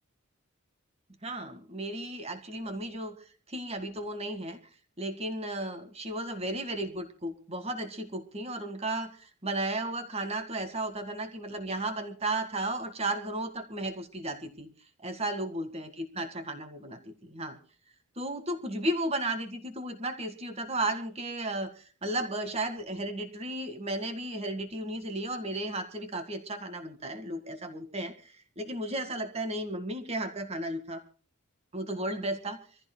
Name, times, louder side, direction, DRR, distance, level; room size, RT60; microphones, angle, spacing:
voice 1, 1.2-3.2 3.5-4.6 5.0-14.7 15.0-17.6 18.2-31.0 31.7-32.6, right 1 dB, 30° right, 7 dB, 1.9 m, -34 dB
26.0 x 16.0 x 2.2 m, 0.41 s
head